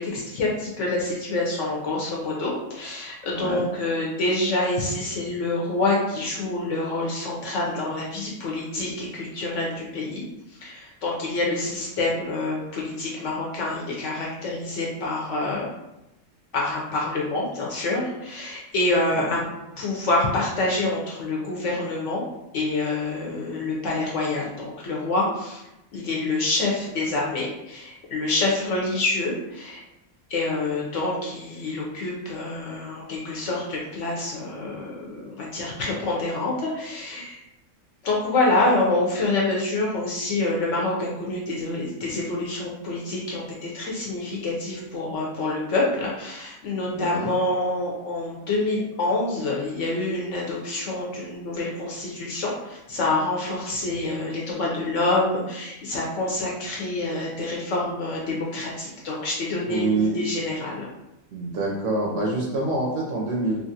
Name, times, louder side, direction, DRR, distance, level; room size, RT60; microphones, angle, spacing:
voice 1, 0.0-10.2 10.6-15.7 16.5-19.4 19.8-22.2 22.5-25.6 25.9-29.8 30.3-37.4 38.0-60.9, left 2 dB, 65° left, -3 dB, 0.8 m, -27 dB
voice 2, 3.3-3.7 19.2-19.4 46.9-47.3 59.7-60.2 61.3-63.7, right 2 dB, 65° right, -2 dB, 0.8 m, -26 dB
3.0 x 2.4 x 2.7 m, 0.92 s
omnidirectional pair, 1.6 m